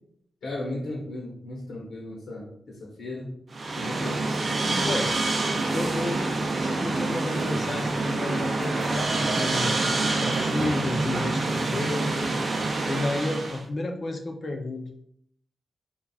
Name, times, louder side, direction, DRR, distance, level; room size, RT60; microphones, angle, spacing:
voice 1, 0.4-3.3 3.7-4.2, left 1 dB, 80° left, -3 dB, 0.9 m, -36 dB
sound 1, 3.5-13.6, right 2 dB, 40° right, 0.5 m, -26 dB
voice 2, 4.6-5.1 5.7-12.4 12.9-15.0, left 2 dB, 40° left, 3 dB, 0.5 m, -32 dB
5.3 x 2.3 x 2.3 m, 0.69 s
wide cardioid pair, 150°, 0 cm